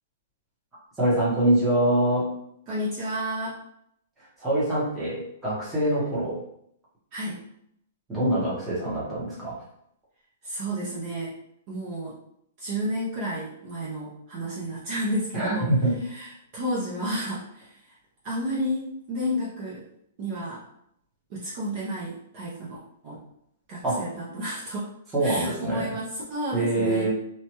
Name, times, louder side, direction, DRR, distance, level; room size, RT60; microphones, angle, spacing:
voice 1, 1.0-2.3 4.4-6.4 8.1-9.6 15.3-16.0 23.8-24.0 25.1-25.9 26.5-27.1, right 1 dB, 10° right, -8 dB, 0.9 m, -24 dB
voice 2, 2.7-3.6 7.1-7.4 10.4-11.4 11.7-12.2 12.6-15.7 16.0-18.0 18.2-19.8 20.2-20.6 21.3-23.2 23.7-24.9 25.2-27.1, equal, 30° right, -7 dB, 0.6 m, -31 dB
2.9 x 2.2 x 2.9 m, 0.72 s
hypercardioid pair, 170°, 0 cm